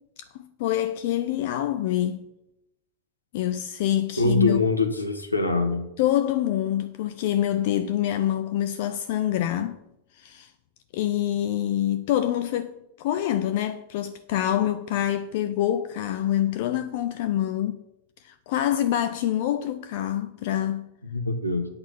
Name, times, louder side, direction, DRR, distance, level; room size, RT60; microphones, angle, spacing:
voice 1, 0.3-2.2 3.3-4.6 6.0-9.8 10.2-10.5 10.9-17.8 18.2-20.9, left 12 dB, 50° left, 0.6 m, -26 dB
voice 2, 4.2-5.9 21.0-21.7, left 2 dB, 85° left, 1.5 m, -24 dB
8.6 x 6.2 x 8.2 m
figure-of-eight pair, 90°, 0 cm